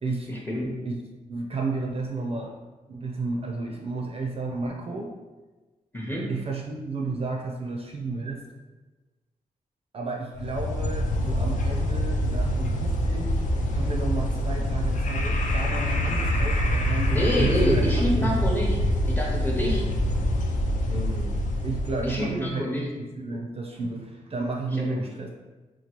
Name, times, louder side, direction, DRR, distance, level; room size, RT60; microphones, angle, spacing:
voice 1, 0.3-0.8 5.9-6.3 17.1-18.8 19.1-19.9 22.0-22.9 24.8-25.0, left 1 dB, 15° left, -2 dB, 0.7 m, -27 dB
voice 2, 1.3-2.6 2.9-5.1 6.3-8.4 9.9-13.3 13.7-18.4 20.9-22.6 23.1-25.3, right 3 dB, 40° right, 0 dB, 0.4 m, -32 dB
sound 1, 10.4-22.3, equal, 60° left, 0.4 m, -25 dB
2.9 x 2.3 x 3.0 m, 1.2 s
cardioid pair, 85°, 15 cm